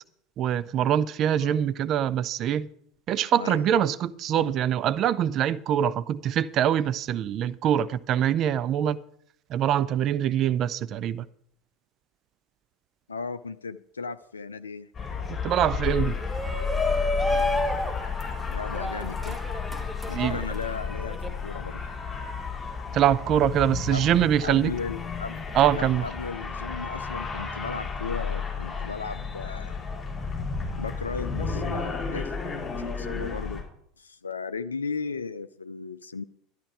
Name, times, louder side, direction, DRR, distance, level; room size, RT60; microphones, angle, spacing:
voice 1, 0.4-2.7 3.1-9.0 9.5-11.2 15.4-16.2 20.1-20.4 22.9-24.7 25.5-26.0, right 10 dB, 40° right, 0.5 m, -24 dB
voice 2, 13.1-14.9 18.5-19.4 20.1-21.8 23.9-24.1 24.4-25.4 25.7-29.8 30.8-32.3 32.8-33.6 34.0-36.2, left 5 dB, 80° left, 0.4 m, -36 dB
sound 1, 14.9-33.6, left 5 dB, 15° left, 5.6 m, -32 dB
Shout, 16.2-21.3, left 1 dB, 5° right, 1.5 m, -30 dB
12.5 x 11.5 x 4.7 m
figure-of-eight pair, 75°, 0 cm